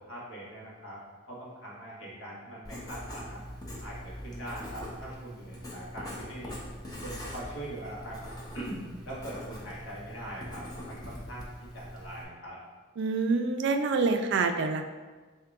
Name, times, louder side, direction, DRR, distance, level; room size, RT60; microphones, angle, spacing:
voice 1, 0.0-1.0 1.3-3.4 3.8-6.6 7.0-8.2 8.5-12.6, right 1 dB, 65° left, -6 dB, 1.4 m, -42 dB
Writing, 2.6-12.2, equal, 20° left, 0.7 m, -42 dB
voice 2, 13.0-14.8, right 4 dB, 60° right, 7 dB, 0.4 m, -26 dB
4.7 x 2.8 x 3.5 m, 1.3 s
head